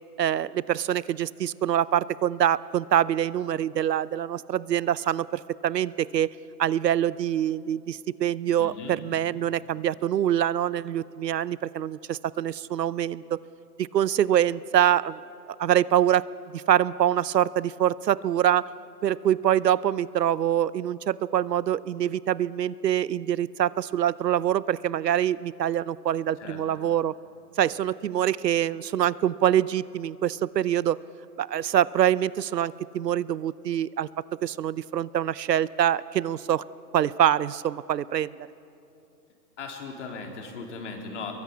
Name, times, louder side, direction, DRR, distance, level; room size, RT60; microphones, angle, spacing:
voice 1, 0.2-6.3 6.6-13.4 13.8-15.2 15.5-16.3 16.5-18.7 19.0-27.1 27.6-31.0 31.4-34.1 34.4-36.6 36.9-38.4, right 11 dB, 75° right, 20 dB, 0.7 m, -25 dB
voice 2, 8.6-9.0 26.4-26.6 39.6-41.3, left 4 dB, 45° left, 2 dB, 3.9 m, -38 dB
23.5 x 22.5 x 8.5 m, 2.8 s
hypercardioid pair, 160°, 50 cm